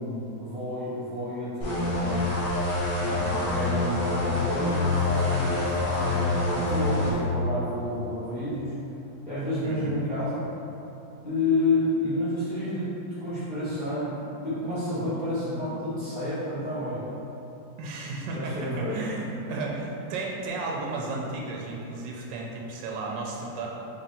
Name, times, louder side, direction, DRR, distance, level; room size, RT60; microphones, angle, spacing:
voice 1, 0.0-2.3 3.0-8.7 9.3-10.4 11.2-12.9 13.2-17.0 18.3-19.0, left 1 dB, 30° left, -15 dB, 1.1 m, -30 dB
sound 1, 1.6-7.1, left 2 dB, 55° left, 0.6 m, -26 dB
voice 2, 3.0-3.4 9.6-10.0 17.8-23.7, right 3 dB, 80° right, -2 dB, 1.2 m, -34 dB
3.5 x 2.6 x 4.1 m, 2.9 s
omnidirectional pair, 2.0 m